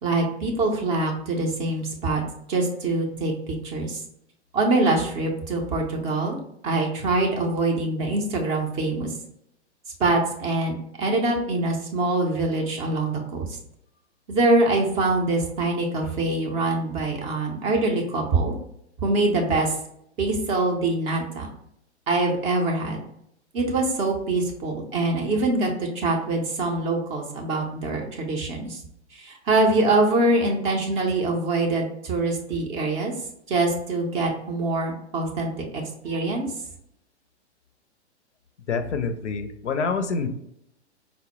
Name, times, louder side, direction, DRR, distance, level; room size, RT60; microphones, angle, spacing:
voice 1, 0.0-2.2 2.5-4.0 4.5-6.4 6.6-9.1 10.0-13.5 14.3-18.6 19.0-19.7 20.2-21.5 22.1-23.0 23.5-28.8 29.1-33.1 33.5-36.5, right 2 dB, 20° right, 1 dB, 0.4 m, -24 dB
voice 2, 38.7-40.3, left 4 dB, 90° left, 9 dB, 0.5 m, -26 dB
4.2 x 2.0 x 2.9 m, 0.75 s
figure-of-eight pair, 110°, 34 cm